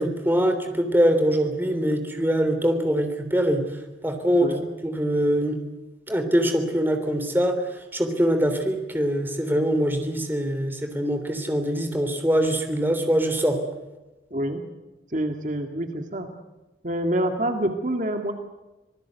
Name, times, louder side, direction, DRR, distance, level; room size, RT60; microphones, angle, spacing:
voice 1, 0.0-3.6 4.0-4.5 4.8-5.6 6.1-13.6, equal, 10° right, 6 dB, 3.3 m, -23 dB
voice 2, 14.3-14.6 15.1-16.3 16.8-18.3, right 1 dB, 45° right, 5 dB, 2.0 m, -26 dB
26.5 x 19.0 x 8.2 m, 1.1 s
head